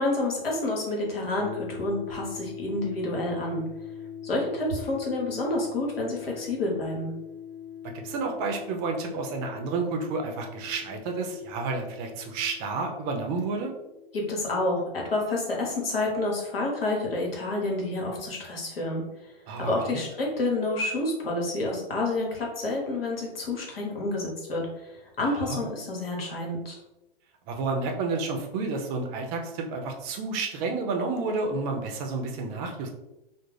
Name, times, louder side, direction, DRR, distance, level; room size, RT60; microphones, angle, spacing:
voice 1, 0.0-3.6 4.2-7.1 14.1-19.0 19.6-24.9 25.2-26.8, left 2 dB, 85° left, -1 dB, 1.0 m, -29 dB
sound 1, 1.4-15.3, left 8 dB, 5° left, 0.8 m, -42 dB
voice 2, 7.9-13.7 19.5-20.0 25.2-25.6 27.5-32.9, right 3 dB, 35° right, 3 dB, 0.5 m, -30 dB
2.4 x 2.0 x 3.2 m, 0.95 s
hypercardioid pair, 110°, 29 cm